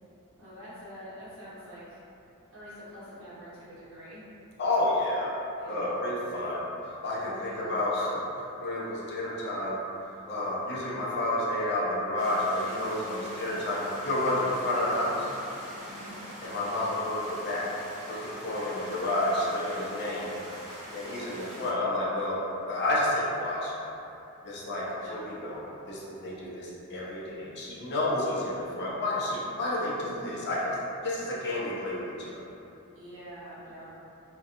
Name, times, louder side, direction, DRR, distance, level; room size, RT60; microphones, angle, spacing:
voice 1, 0.4-2.0 2.5-4.2 5.6-6.1 7.2-7.7 12.9-13.6 15.8-16.2 21.3-21.8 25.0-25.2 32.9-34.0, equal, 65° right, -11 dB, 1.0 m, -46 dB
voice 2, 4.6-5.3 5.7-9.8 10.3-15.3 16.4-17.7 18.0-20.3 20.9-22.4 22.7-23.7 24.4-30.8 31.0-32.4, left 1 dB, 50° left, -6 dB, 0.5 m, -30 dB
sound 1, 12.2-21.7, equal, 35° right, 0.5 m, -43 dB
2.6 x 2.2 x 2.4 m, 2.8 s
head